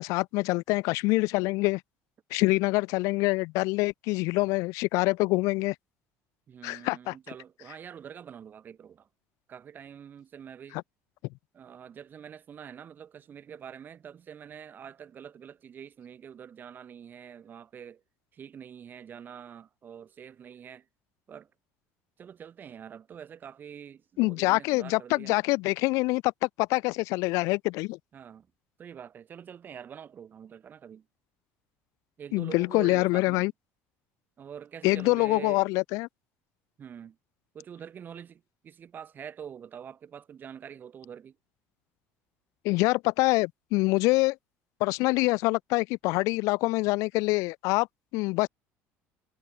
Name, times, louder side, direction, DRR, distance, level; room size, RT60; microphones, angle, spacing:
voice 1, 0.0-1.8 2.3-5.7 6.6-7.1 10.7-10.8 24.2-28.0 32.3-33.5 34.8-36.1 42.6-44.3 44.8-47.9 48.1-48.5, left 23 dB, 75° left, 1.6 m, -25 dB
voice 2, 6.5-9.0 9.5-10.8 11.5-18.0 18.3-20.8 21.3-21.5 22.2-25.4 28.1-28.5 28.8-31.0 32.2-33.5 34.4-35.6 36.8-37.2 37.5-41.3, right 8 dB, 35° right, 7.6 m, -45 dB
cardioid pair, 125°, 5 cm